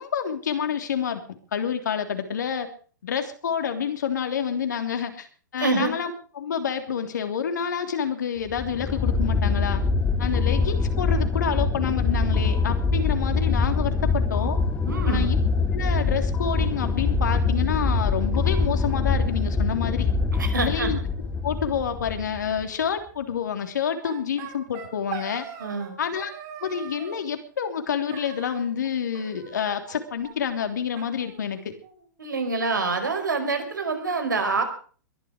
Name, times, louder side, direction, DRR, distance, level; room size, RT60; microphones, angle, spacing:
voice 1, 0.0-2.7 3.0-5.3 5.5-9.9 10.2-14.6 15.1-20.1 20.6-21.0 21.4-25.5 26.0-26.3 26.6-31.7, left 7 dB, 70° left, 6 dB, 3.3 m, -28 dB
voice 2, 5.6-6.0 14.9-15.3 20.4-20.9 25.6-25.9 32.2-34.6, right 4 dB, 85° right, 6 dB, 5.0 m, -26 dB
sound 1, 8.5-22.6, left 4 dB, 15° left, 2.7 m, -24 dB
sound 2, 24.0-25.9 26.2-27.2 28.1-28.9 29.1-30.0 30.2-30.3 30.6-30.7 31.0-32.0, right 8 dB, 45° right, 7.0 m, -40 dB
22.5 x 11.5 x 5.0 m, 0.42 s
figure-of-eight pair, 110°, 10 cm